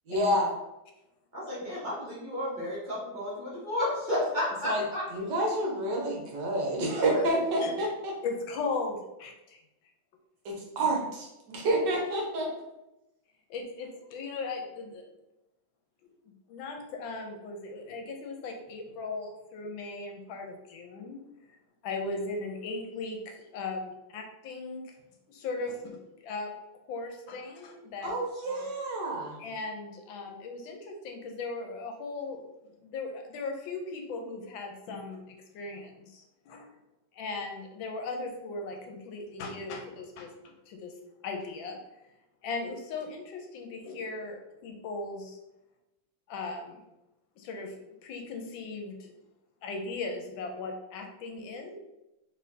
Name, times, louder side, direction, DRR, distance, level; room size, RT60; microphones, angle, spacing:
voice 1, 0.1-0.5 4.6-4.8 5.1-8.1 10.4-12.5 28.0-29.4, right 1 dB, 70° right, 0 dB, 1.4 m, -29 dB
voice 2, 1.3-5.0 6.8-7.2 7.6-7.7, left 1 dB, 30° right, -7 dB, 1.0 m, -32 dB
voice 3, 8.2-9.6 10.8-10.9 13.5-15.0 16.5-21.2 21.8-24.9 25.3-26.5 26.9-28.1 29.4-32.5 32.8-36.7 37.1-40.9 41.2-41.8 42.4-45.4 46.3-46.8 47.4-47.7 48.0-49.1 49.6-51.7, left 3 dB, 80° left, 3 dB, 1.4 m, -38 dB
4.2 x 3.4 x 2.7 m, 0.94 s
omnidirectional pair, 2.1 m